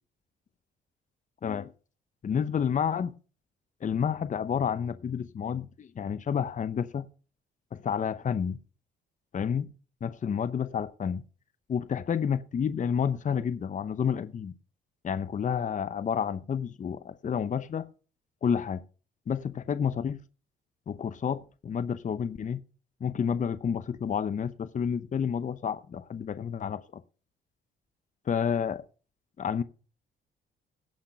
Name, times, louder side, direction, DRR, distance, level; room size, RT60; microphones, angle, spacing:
voice 1, 1.4-1.7 2.2-3.1 3.8-7.1 7.7-8.6 9.3-9.7 10.0-11.2 11.7-14.5 15.0-17.9 18.4-18.8 19.3-20.2 20.9-22.6 23.0-27.0 28.3-28.8 29.4-29.6, left 7 dB, 40° left, 0.8 m, -30 dB
17.0 x 5.9 x 5.8 m
cardioid pair, 90°, 20 cm